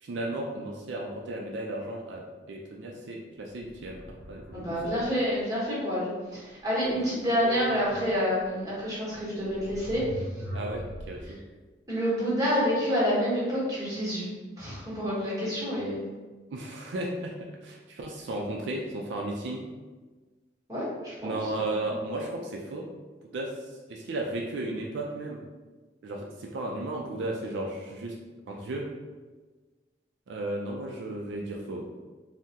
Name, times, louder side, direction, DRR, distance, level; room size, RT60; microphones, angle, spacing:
voice 1, 0.0-5.2 6.9-7.9 10.5-11.4 16.5-19.7 21.2-22.9 23.3-23.5 23.9-25.4 26.0-28.1 28.5-28.9 30.3-31.9, right 2 dB, 75° right, -1 dB, 0.4 m, -35 dB
sound 1, 3.6-5.3 8.4-8.5 9.4-11.3, equal, 60° left, 0.6 m, -40 dB
voice 2, 4.5-10.2 11.3-11.4 11.9-14.3 14.6-16.1 20.7-21.7, equal, 20° right, -8 dB, 1.0 m, -28 dB
3.6 x 2.1 x 2.7 m, 1.3 s
head